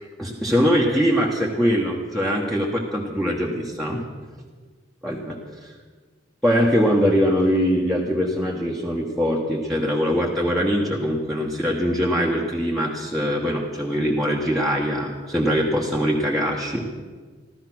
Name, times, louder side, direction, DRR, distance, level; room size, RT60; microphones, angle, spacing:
voice 1, 0.2-4.0 5.0-5.7 6.4-16.9, equal, ahead, -4 dB, 1.2 m, -22 dB
14.0 x 13.5 x 6.1 m, 1.5 s
head